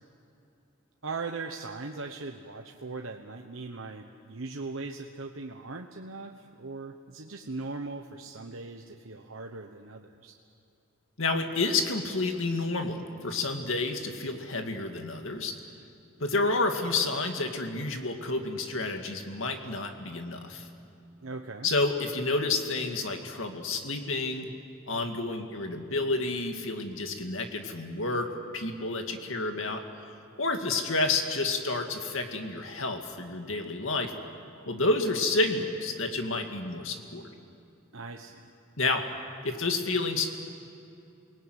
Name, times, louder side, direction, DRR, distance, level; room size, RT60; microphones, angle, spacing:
voice 1, 1.0-10.4 21.2-21.7 37.9-38.5, right 3 dB, 75° right, 3 dB, 1.2 m, -39 dB
voice 2, 11.2-15.5 16.2-20.7 21.6-24.5 24.9-34.1 34.6-37.2 38.8-39.1 39.4-40.3, left 3 dB, 70° left, 4 dB, 2.2 m, -30 dB
29.0 x 20.0 x 9.3 m, 2.7 s
head